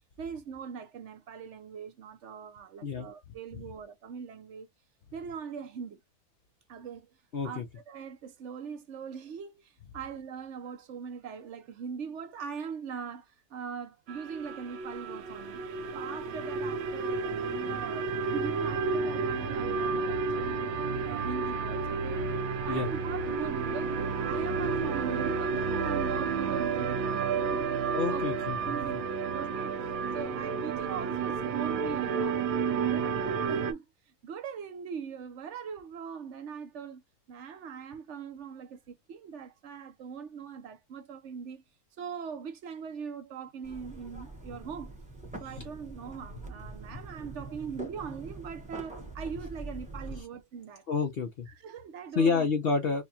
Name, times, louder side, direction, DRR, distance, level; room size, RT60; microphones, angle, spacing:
voice 1, 0.2-4.7 5.1-6.0 6.7-7.1 7.4-15.6 15.9-20.7 21.0-22.2 22.6-24.0 24.2-28.3 28.6-29.0 29.3-29.7 30.1-37.0 37.3-41.6 42.0-44.9 45.4-50.9 51.5-52.5, right 6 dB, 60° right, 0.7 m, -41 dB
voice 2, 7.3-7.6 22.7-22.9 27.9-28.6 50.9-51.5 52.2-53.0, left 4 dB, 70° left, 0.5 m, -28 dB
sound 1, 14.1-33.7, right 5 dB, 85° right, 1.5 m, -31 dB
sound 2, 43.6-50.2, right 2 dB, 5° right, 0.6 m, -43 dB
4.4 x 2.3 x 2.7 m
omnidirectional pair, 2.0 m